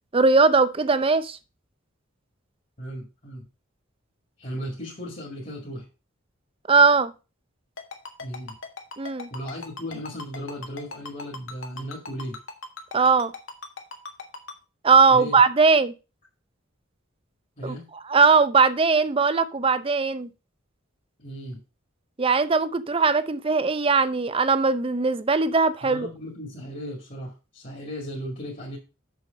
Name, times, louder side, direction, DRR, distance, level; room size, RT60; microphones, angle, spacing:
voice 1, 0.1-1.4 6.7-7.1 9.0-9.3 12.9-13.3 14.8-15.9 17.6-17.8 18.1-20.3 22.2-26.1, right 4 dB, 25° right, 0.5 m, -19 dB
voice 2, 2.8-3.4 4.4-5.9 8.2-8.6 9.3-12.4 15.1-15.4 17.6-17.9 21.2-21.6 25.8-28.8, equal, 40° left, 2.1 m, -36 dB
Ringtone, 7.8-14.5, left 3 dB, 75° left, 1.6 m, -37 dB
6.9 x 6.4 x 5.3 m
head